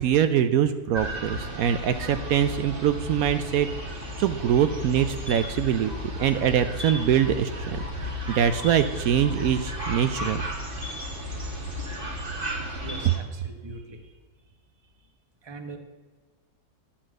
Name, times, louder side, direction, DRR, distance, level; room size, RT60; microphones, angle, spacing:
voice 1, 0.0-3.7 4.2-5.9 6.2-10.4, right 9 dB, 75° right, 10 dB, 1.0 m, -23 dB
sound 1, 0.9-13.2, left 1 dB, 35° right, 1.8 m, -34 dB
voice 2, 12.8-14.1 15.4-15.8, right 3 dB, 20° right, 5 dB, 0.9 m, -41 dB
11.0 x 5.8 x 7.6 m, 1.3 s
omnidirectional pair, 1.6 m